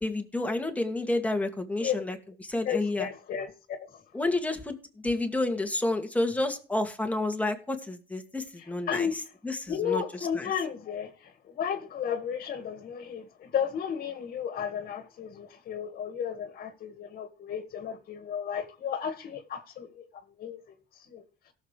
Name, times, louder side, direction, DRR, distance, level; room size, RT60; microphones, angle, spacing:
voice 1, 0.0-3.1 4.1-4.8 5.0-10.0 10.3-10.5, left 2 dB, 10° left, 2.3 m, -30 dB
voice 2, 2.6-3.5 8.9-9.1 9.7-20.8 21.1-21.2, left 8 dB, 60° left, 1.9 m, -33 dB
17.5 x 7.3 x 3.3 m
cardioid pair, 110°, 17 cm